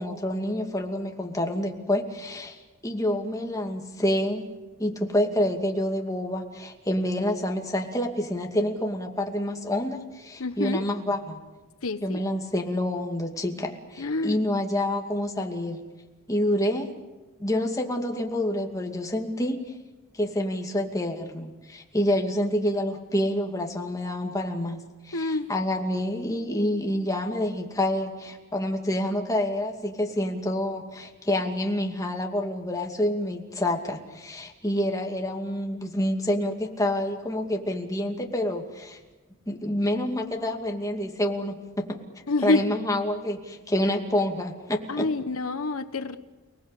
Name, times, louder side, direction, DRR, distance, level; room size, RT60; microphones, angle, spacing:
voice 1, 0.0-4.5 4.8-11.4 12.0-15.8 16.3-16.9 17.4-19.6 20.1-39.0 39.5-42.0 42.4-45.1, left 1 dB, 15° left, 2 dB, 2.4 m, -28 dB
voice 2, 10.4-10.9 11.8-12.2 14.0-14.5 25.1-25.5 42.3-42.7 44.9-46.2, left 2 dB, 90° left, 10 dB, 1.1 m, -27 dB
30.0 x 19.5 x 8.4 m, 1.2 s
head